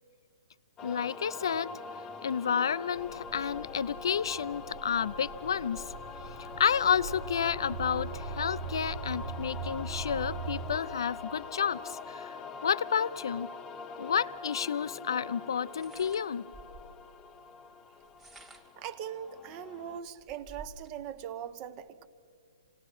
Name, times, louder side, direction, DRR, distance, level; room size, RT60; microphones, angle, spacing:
voice 1, 0.8-1.7 2.2-5.9 6.6-13.5 14.0-16.4, left 7 dB, 70° left, 18 dB, 0.5 m, -30 dB
secundo tempore processed, 0.8-20.0, left 5 dB, 15° left, 0.6 m, -44 dB
sound 1, 2.9-10.8, right 5 dB, 70° right, 1.1 m, -41 dB
Open Close Curtain, 14.3-14.4 15.7-17.0 18.0-18.9 19.5-19.6 19.9-21.0, right 2 dB, 5° right, 1.2 m, -52 dB
voice 2, 18.8-22.1, right 9 dB, 25° right, 13 dB, 0.7 m, -40 dB
28.0 x 18.0 x 6.1 m, 2.3 s
hypercardioid pair, 160°, 2 cm